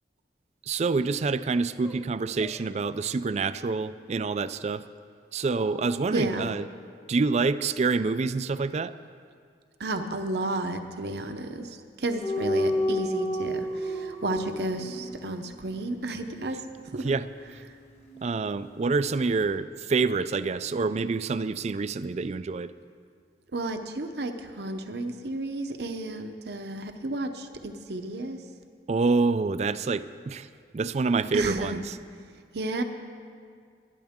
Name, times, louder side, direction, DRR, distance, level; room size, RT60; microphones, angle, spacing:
voice 1, 0.6-4.9 5.3-6.7 7.1-8.9 17.0-17.3 18.2-22.7 28.9-32.0, right 4 dB, 40° right, 14 dB, 0.4 m, -27 dB
sound 1, 1.8-2.0 2.4-2.7 5.4-6.5, right 1 dB, ahead, 0.7 m, -45 dB
voice 2, 6.1-6.5 9.8-16.6 16.9-17.1 23.5-28.4 31.3-31.8 32.5-32.8, right 2 dB, 65° right, 6 dB, 0.8 m, -32 dB
sound 2, 12.2-19.0 19.3-19.5, left 1 dB, 35° left, 1.7 m, -32 dB
19.5 x 11.5 x 3.6 m, 2.1 s
head